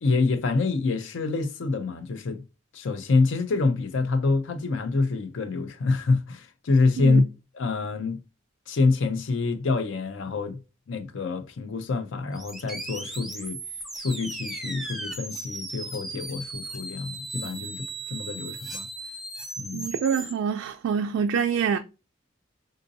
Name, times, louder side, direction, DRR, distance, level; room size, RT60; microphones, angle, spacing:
voice 1, 0.0-2.4 2.7-7.2 7.6-8.2 8.7-10.6 10.9-13.6 14.0-18.9 19.6-19.9, left 3 dB, 70° left, 0.5 m, -26 dB
sound 1, 12.3-20.3, right 2 dB, ahead, 0.4 m, -37 dB
voice 2, 19.7-21.8, right 7 dB, 85° right, 0.3 m, -26 dB
3.7 x 2.5 x 2.6 m
head